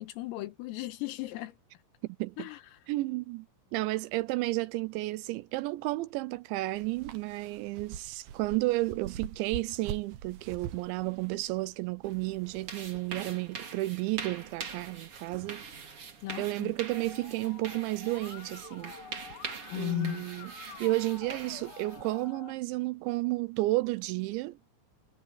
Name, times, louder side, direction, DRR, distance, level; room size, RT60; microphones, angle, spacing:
voice 1, 0.0-1.6 2.4-2.6 16.2-16.7 19.7-20.3, left 17 dB, 85° left, 4.0 m, -36 dB
voice 2, 2.0-2.5 2.9-3.5 3.7-15.6 16.0-16.1 16.4-18.9 19.7-20.5 20.8-24.6, right 20 dB, 85° right, 2.6 m, -32 dB
sound 1, 6.7-12.7, right 8 dB, 65° right, 2.5 m, -44 dB
sound 2, 12.0-22.2, right 5 dB, 35° right, 2.5 m, -44 dB
Musical instrument, 16.9-22.5, left 7 dB, 55° left, 3.9 m, -49 dB
omnidirectional pair, 5.9 m